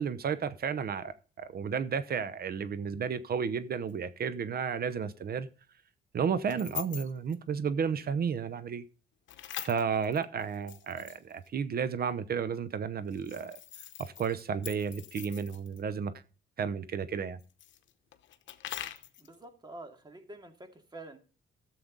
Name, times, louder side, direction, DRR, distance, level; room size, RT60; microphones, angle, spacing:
voice 1, 0.0-5.5 6.1-8.8 9.6-13.6 14.0-16.1 16.6-17.4, right 6 dB, 50° right, 0.8 m, -32 dB
sound 1, 3.9-4.0 6.5-7.4 9.3-11.5 13.1-15.8 17.4-19.3, left 12 dB, 70° left, 1.0 m, -43 dB
voice 2, 19.2-21.2, right 2 dB, 20° right, 2.4 m, -47 dB
13.0 x 7.7 x 3.9 m
cardioid pair, 90°, 20 cm